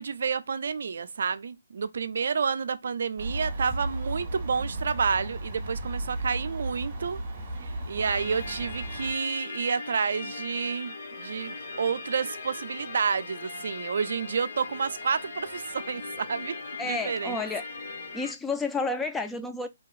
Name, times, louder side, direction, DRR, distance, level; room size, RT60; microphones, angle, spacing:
voice 1, 0.0-7.2 7.6-16.6 16.8-17.4, right 5 dB, 65° right, 0.3 m, -30 dB
sound 1, 3.2-9.1, right 2 dB, 35° right, 1.2 m, -34 dB
sound 2, 8.0-18.3, left 4 dB, 60° left, 0.9 m, -39 dB
voice 2, 16.8-17.7 18.1-19.7, left 3 dB, 5° left, 0.4 m, -30 dB
2.9 x 2.8 x 2.3 m
hypercardioid pair, 145°, 0 cm